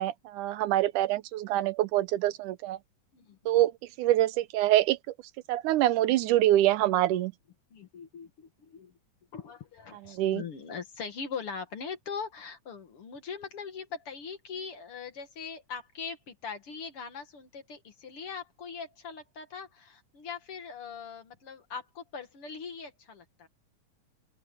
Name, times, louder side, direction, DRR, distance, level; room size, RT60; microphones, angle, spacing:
voice 1, 0.0-2.8 3.5-3.7 4.0-5.0 5.5-7.3 10.1-10.4, right 14 dB, 80° right, 2.2 m, -25 dB
voice 2, 7.7-8.9 9.3-23.5, left 6 dB, 50° left, 2.4 m, -41 dB
open air
omnidirectional pair, 3.6 m